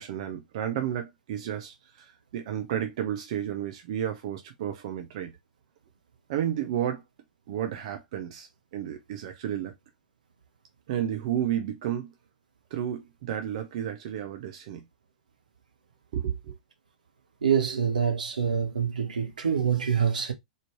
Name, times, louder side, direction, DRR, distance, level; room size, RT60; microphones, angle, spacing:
voice 1, 0.0-5.3 6.3-7.0 7.5-9.7 10.9-12.1 12.7-14.8 16.1-16.5, right 10 dB, 50° right, 0.9 m, -32 dB
voice 2, 17.4-20.3, right 7 dB, 70° right, 1.1 m, -26 dB
4.1 x 3.8 x 3.2 m
figure-of-eight pair, 95°, 4 cm